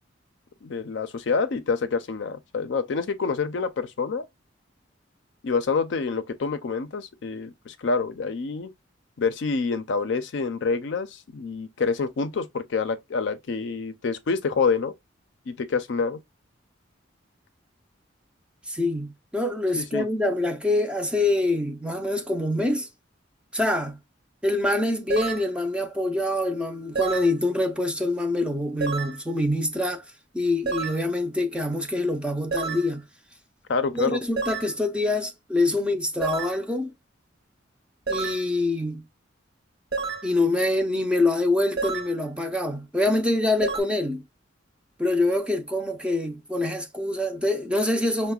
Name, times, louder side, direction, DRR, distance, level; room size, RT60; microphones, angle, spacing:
voice 1, 0.6-4.3 5.4-8.7 9.2-14.9 15.5-16.2 19.8-20.1 33.7-34.2, left 4 dB, 65° left, 0.4 m, -27 dB
voice 2, 18.7-22.9 23.5-24.0 24.4-30.1 30.3-33.0 33.9-36.9 38.1-39.1 40.2-44.2 45.0-48.3, left 2 dB, 5° right, 0.4 m, -25 dB
sound 1, 25.1-25.5 27.0-27.3 28.8-29.2 30.7-31.0 32.5-32.9 34.4-34.7 36.2-36.6 38.1-38.4 39.9-40.3 41.8-42.1 43.6-43.8, right 4 dB, 55° right, 0.8 m, -29 dB
5.5 x 2.1 x 2.2 m
head